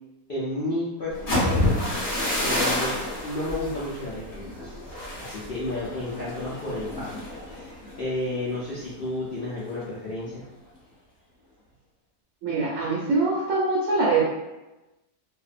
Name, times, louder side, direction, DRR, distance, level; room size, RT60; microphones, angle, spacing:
voice 1, 0.3-1.8 2.4-7.1 7.5-10.4, left 2 dB, 85° left, -9 dB, 0.4 m, -32 dB
sound 1, 1.1-9.0 9.3-9.6 10.0-10.4, left 1 dB, 35° left, 0.6 m, -29 dB
voice 2, 12.4-14.3, right 3 dB, 65° right, -6 dB, 0.9 m, -23 dB
2.6 x 2.1 x 2.4 m, 1.0 s
omnidirectional pair, 1.6 m